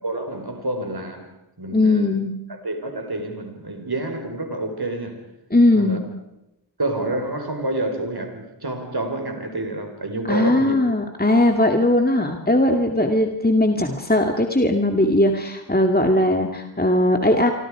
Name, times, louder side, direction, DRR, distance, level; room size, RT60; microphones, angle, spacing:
voice 1, 0.0-1.3 1.6-2.2 2.6-5.2 5.7-6.0 6.8-10.8 17.2-17.4, right 2 dB, 60° right, 4.6 m, -28 dB
voice 2, 1.7-2.3 5.5-6.0 10.3-17.5, left 1 dB, 20° left, 2.4 m, -19 dB
30.0 x 25.0 x 5.0 m
wide cardioid pair, 40°, 43 cm